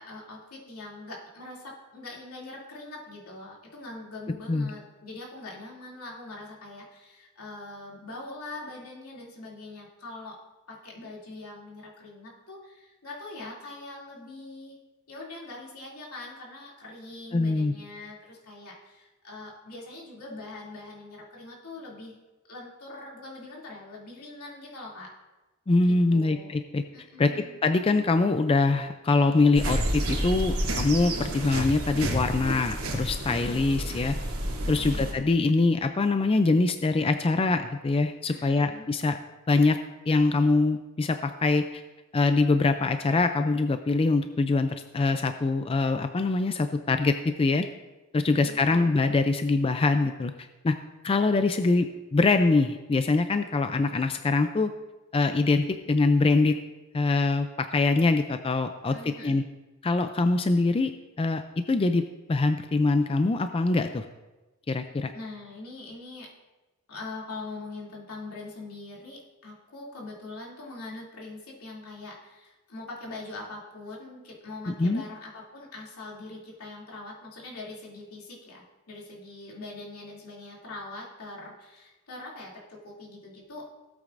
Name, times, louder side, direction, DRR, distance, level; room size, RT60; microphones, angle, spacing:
voice 1, 0.0-10.4 10.7-14.8 15.1-22.2 22.5-25.1 25.9-26.5 26.9-27.6 33.4-33.8 34.9-35.3 38.3-38.9 48.3-49.0 58.9-59.4 65.1-66.3 66.9-83.8, left 2 dB, 85° left, -4 dB, 2.7 m, -42 dB
voice 2, 17.3-17.7 25.7-26.8 27.2-34.1 34.7-39.2 39.5-39.8 40.1-41.8 42.1-47.7 48.1-50.3 50.6-50.7 51.0-54.7 55.1-56.6 56.9-59.4 59.8-60.9 61.2-62.0 62.3-64.0 64.7-65.1 74.8-75.0, left 3 dB, 25° left, 8 dB, 0.3 m, -24 dB
sound 1, 29.5-35.1, right 1 dB, 85° right, 2.7 m, -30 dB
16.5 x 8.4 x 2.5 m, 1.1 s
head